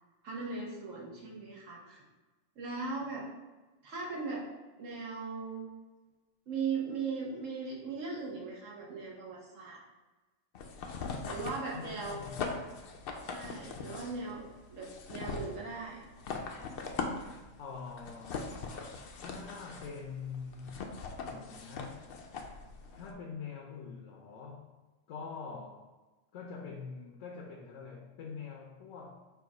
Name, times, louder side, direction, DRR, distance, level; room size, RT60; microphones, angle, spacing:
voice 1, 0.2-2.0 2.6-3.3 3.8-4.5 4.8-5.7 6.5-9.8 11.2-12.3 13.3-14.4 14.7-16.0, right 4 dB, 80° right, -3 dB, 1.4 m, -38 dB
sound 1, 10.5-23.1, left 4 dB, 60° left, 0.6 m, -41 dB
voice 2, 11.7-12.8 17.6-20.8 21.2-22.0 22.9-24.7 25.1-25.9 26.3-29.3, left 5 dB, 80° left, 0 dB, 1.0 m, -45 dB
4.5 x 2.4 x 4.7 m, 1.2 s
omnidirectional pair, 1.3 m